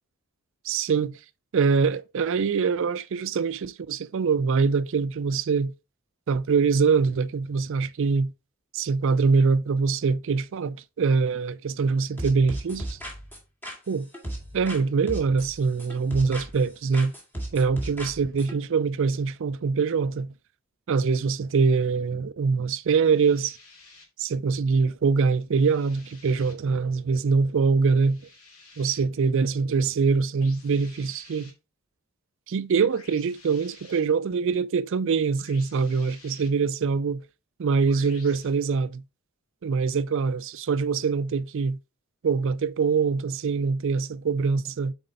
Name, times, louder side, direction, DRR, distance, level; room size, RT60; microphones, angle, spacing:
voice 1, 0.6-1.1 1.5-5.7 6.3-8.3 8.7-13.0 13.9-14.1 14.5-17.1 17.5-20.3 20.9-23.6 24.2-28.2 28.8-31.5 32.5-37.2 37.6-39.0 39.6-41.8 42.2-44.9, right 5 dB, 60° right, 0.4 m, -24 dB
sound 1, 12.2-14.8 15.1-16.7 16.9-18.5, right 1 dB, 10° left, 1.8 m, -36 dB
sound 2, 23.0-24.0 25.5-26.5 28.0-29.0 30.4-31.5 32.9-34.0 35.4-36.5 37.9-38.5, left 3 dB, 80° left, 2.6 m, -51 dB
7.9 x 4.3 x 3.8 m
head